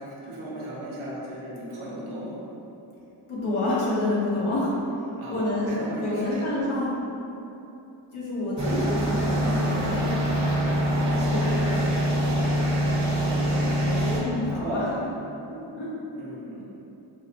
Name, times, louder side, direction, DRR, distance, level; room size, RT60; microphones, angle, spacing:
voice 1, 0.0-2.4 5.2-6.5 10.5-11.0 13.1-13.6 14.6-15.0 16.1-16.6, right 1 dB, 85° right, -5 dB, 0.9 m, -36 dB
voice 2, 3.3-4.7 5.3-5.7 6.0-6.9 8.1-10.1 11.1-11.8 13.9-14.8 15.5-15.9, left 1 dB, 80° left, -7 dB, 1.0 m, -28 dB
sound 1, 8.6-14.2, equal, 35° right, 1.0 m, -24 dB
4.7 x 2.1 x 2.8 m, 2.9 s
cardioid pair, 65°, 48 cm